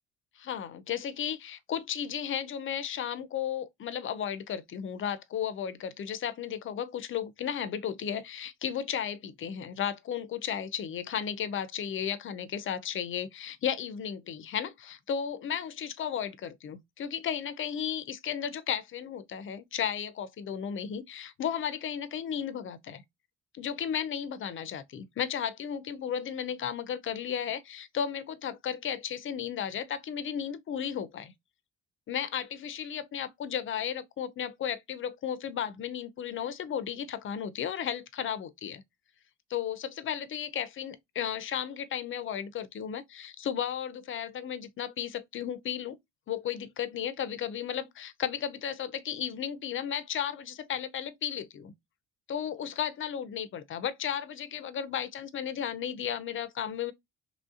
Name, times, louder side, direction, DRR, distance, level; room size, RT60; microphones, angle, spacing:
voice 1, 0.4-23.0 23.5-31.3 32.1-38.8 39.5-46.0 46.3-51.7 52.3-56.9, left 9 dB, 45° left, 0.4 m, -34 dB
3.0 x 2.6 x 2.4 m
cardioid pair, 105°, 30 cm